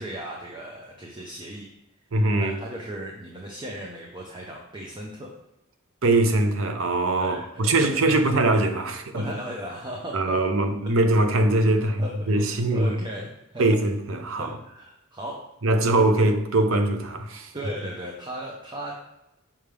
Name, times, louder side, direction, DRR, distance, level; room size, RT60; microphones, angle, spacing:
voice 1, 0.0-1.7 2.3-5.3 7.2-8.2 9.1-10.9 11.6-13.7 14.3-15.4 17.5-18.9, right 1 dB, 20° right, 0.7 m, -37 dB
voice 2, 2.1-2.6 6.0-9.2 10.1-13.0 13.6-14.5 15.6-17.5, right 2 dB, 65° right, 0.7 m, -22 dB
5.8 x 5.2 x 3.3 m
head